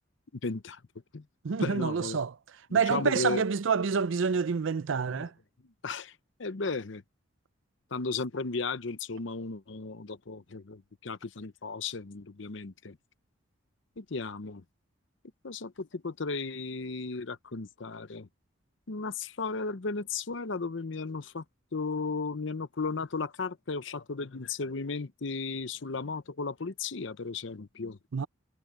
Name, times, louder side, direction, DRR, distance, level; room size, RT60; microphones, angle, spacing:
voice 1, 0.4-0.8 1.1-1.2 1.6-2.2 2.7-3.4 5.1-5.3 5.8-6.1 6.4-7.0 7.9-13.0 14.0-14.6 15.4-18.3 18.9-21.4 21.7-28.0, left 4 dB, 70° left, 0.8 m, -35 dB
voice 2, 1.4-2.3 2.7-5.3 28.1-28.3, right 5 dB, 75° right, 0.5 m, -27 dB
head